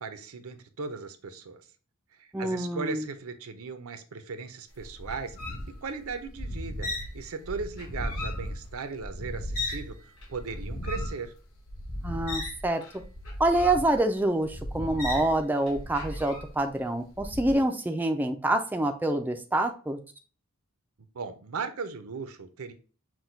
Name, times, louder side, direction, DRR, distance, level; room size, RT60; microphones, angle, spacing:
voice 1, 0.0-1.6 2.2-6.9 7.1-11.3 21.1-22.7, right 4 dB, 70° right, 9 dB, 0.6 m, -37 dB
voice 2, 2.3-3.1 12.0-12.8 13.4-20.0, right 1 dB, 10° right, 4 dB, 0.3 m, -26 dB
sound 1, 4.8-9.9 10.2-16.7 17.1-17.6, left 1 dB, 65° left, 1.6 m, -36 dB
6.0 x 2.2 x 3.9 m, 0.37 s
head